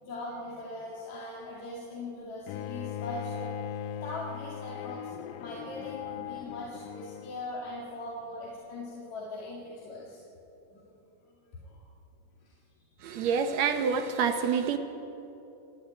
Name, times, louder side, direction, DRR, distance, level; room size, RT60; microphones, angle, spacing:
voice 1, 0.0-5.1 5.4-10.2 10.7-10.9 11.5-11.8 12.4-12.6, left 1 dB, 50° left, -5 dB, 3.4 m, -41 dB
Bowed string instrument, 2.5-7.5, left 10 dB, 80° left, 2.4 m, -39 dB
voice 2, 13.0-14.8, right 6 dB, 80° right, 7 dB, 1.5 m, -27 dB
28.5 x 10.5 x 9.1 m, 2.9 s
omnidirectional pair, 4.4 m